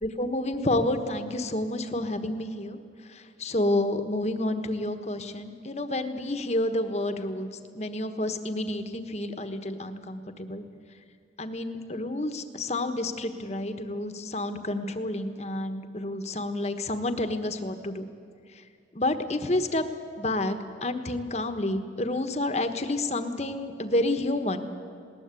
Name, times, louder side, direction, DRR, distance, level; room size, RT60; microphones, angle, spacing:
voice 1, 0.0-2.8 3.1-7.5 7.7-10.6 11.4-18.0 18.9-19.9 20.2-20.6 20.8-24.7, left 1 dB, 40° left, 8 dB, 1.3 m, -29 dB
20.0 x 19.0 x 8.3 m, 2.4 s
head